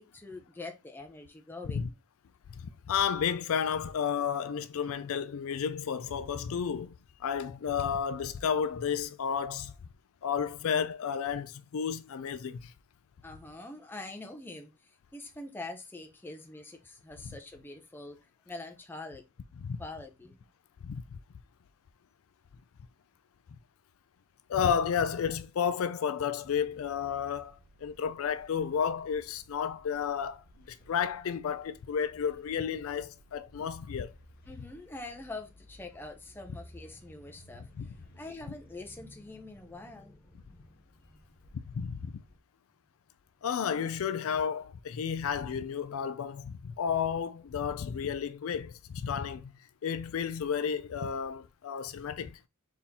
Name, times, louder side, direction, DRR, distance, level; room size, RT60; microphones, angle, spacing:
voice 1, 0.0-1.9 13.2-18.2 18.5-19.2 19.8-20.4 34.5-40.7 41.1-41.3, left 2 dB, 10° left, 0.6 m, -45 dB
voice 2, 2.6-6.9 7.2-9.7 10.2-12.7 19.6-19.8 20.8-21.2 24.5-34.1 37.8-37.9 41.7-42.1 43.4-49.5 49.8-52.4, left 7 dB, 70° left, 0.4 m, -32 dB
sound 1, 26.4-42.4, equal, 40° left, 0.8 m, -58 dB
4.1 x 3.6 x 2.8 m
head